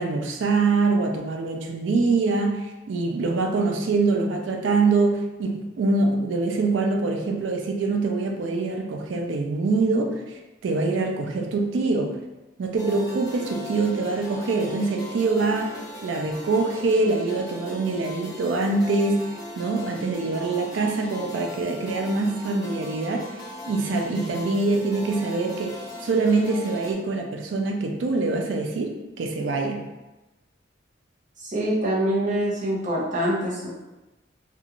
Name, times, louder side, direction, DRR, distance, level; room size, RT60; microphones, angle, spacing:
voice 1, 0.0-12.2 12.6-23.3 23.7-29.9, right 3 dB, 70° right, 2 dB, 0.4 m, -24 dB
sound 1, 12.8-26.9, equal, 20° left, 0.6 m, -39 dB
voice 2, 31.4-33.7, right 1 dB, 40° right, -6 dB, 0.7 m, -25 dB
2.4 x 2.3 x 2.9 m, 1.1 s
head